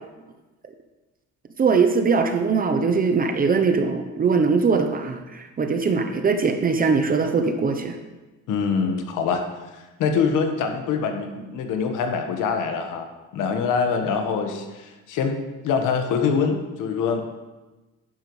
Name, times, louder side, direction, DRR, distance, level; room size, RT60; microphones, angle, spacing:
voice 1, 1.6-8.0, right 5 dB, 25° right, 6 dB, 0.7 m, -21 dB
voice 2, 8.5-9.4 10.0-15.4 15.6-17.2, left 5 dB, 75° left, 4 dB, 1.4 m, -24 dB
11.0 x 10.5 x 3.2 m, 1.1 s
cardioid pair, 145°, 32 cm